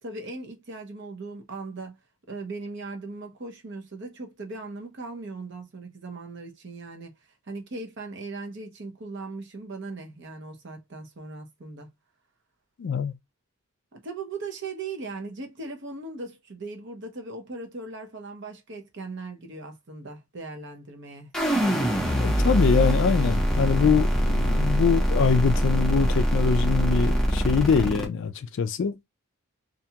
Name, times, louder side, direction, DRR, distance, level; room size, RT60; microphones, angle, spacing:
voice 1, 0.0-2.0 2.3-7.1 7.5-11.9 13.9-21.4, right 3 dB, 55° right, 0.7 m, -38 dB
voice 2, 12.8-13.1 22.2-29.0, left 6 dB, 55° left, 0.3 m, -24 dB
sound 1, 21.3-28.0, equal, 5° left, 0.6 m, -23 dB
2.6 x 2.2 x 2.8 m
head